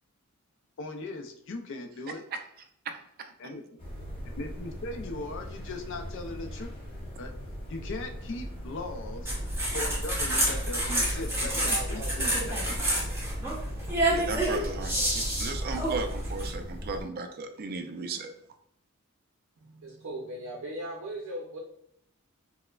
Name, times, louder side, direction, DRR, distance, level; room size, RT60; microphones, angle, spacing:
voice 1, 0.8-2.2 3.4-3.6 4.4-6.7 7.2-7.3 7.7-9.3 9.7-12.8, left 2 dB, 60° left, 5 dB, 0.4 m, -38 dB
sound 1, 3.8-17.1, equal, 25° left, 0.9 m, -40 dB
sound 2, 9.3-16.5, right 1 dB, 10° right, 0.9 m, -29 dB
voice 2, 10.6-14.6 19.6-21.6, right 1 dB, 85° right, -1 dB, 0.6 m, -42 dB
voice 3, 14.1-15.0 15.4-18.3, right 4 dB, 45° right, 7 dB, 0.4 m, -35 dB
4.3 x 2.1 x 2.3 m, 0.72 s
head